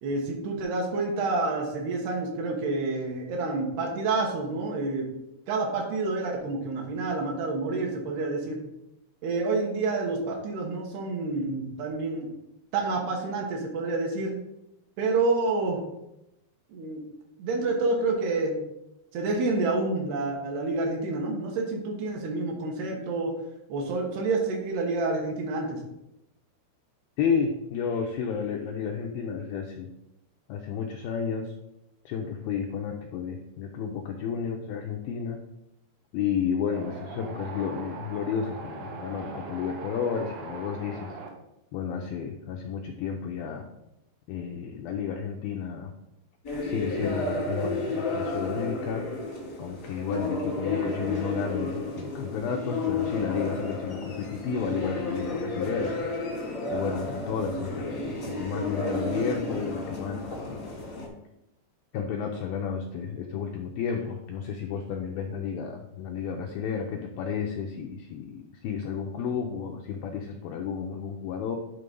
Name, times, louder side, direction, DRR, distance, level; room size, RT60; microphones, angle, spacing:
voice 1, 0.0-5.1 5.5-8.6 9.2-12.3 12.7-14.4 15.0-15.8 16.7-17.0 17.4-18.6 19.1-23.3 23.7-25.8, right 3 dB, 70° right, 0 dB, 3.2 m, -28 dB
voice 2, 27.2-29.9 30.5-31.5 32.1-35.4 36.1-41.2 41.7-43.7 44.3-45.9 46.6-49.1 49.6-56.1 56.7-60.6 61.9-71.6, left 6 dB, 85° left, 2 dB, 2.1 m, -32 dB
Wind, 36.7-41.3, right 3 dB, 90° right, 3.3 m, -40 dB
sound 1, 46.4-61.1, left 2 dB, 50° left, 1.1 m, -32 dB
10.5 x 3.8 x 5.2 m, 0.87 s
omnidirectional pair, 5.0 m